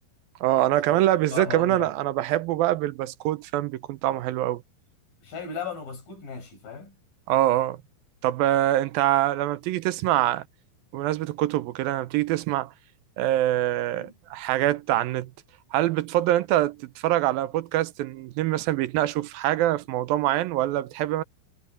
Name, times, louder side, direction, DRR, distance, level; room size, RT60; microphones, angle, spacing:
voice 1, 0.4-4.6 7.3-7.8 8.2-10.4 10.9-12.7 13.2-15.3 15.7-21.2, right 14 dB, 80° right, 2.5 m, -24 dB
voice 2, 1.3-1.9 5.2-6.9 14.0-14.1, left 5 dB, 65° left, 7.2 m, -36 dB
omnidirectional pair, 4.3 m